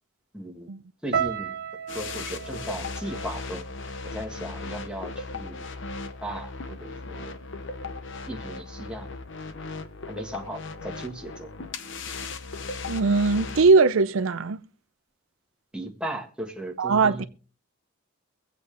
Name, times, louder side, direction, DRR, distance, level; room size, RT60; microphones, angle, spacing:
voice 1, 0.3-0.7 1.0-1.6 1.9-3.6 4.0-5.7 6.2-7.4 8.3-9.1 10.1-11.5 15.7-17.3, right 1 dB, 5° right, 1.7 m, -36 dB
sound 1, 1.1-5.3 5.6-6.4 7.0-7.2, right 7 dB, 50° right, 1.5 m, -35 dB
sound 2, 1.9-13.7, left 3 dB, 60° left, 0.9 m, -37 dB
voice 2, 12.9-14.6 16.8-17.2, right 4 dB, 75° right, 0.5 m, -20 dB
23.5 x 8.2 x 3.3 m
head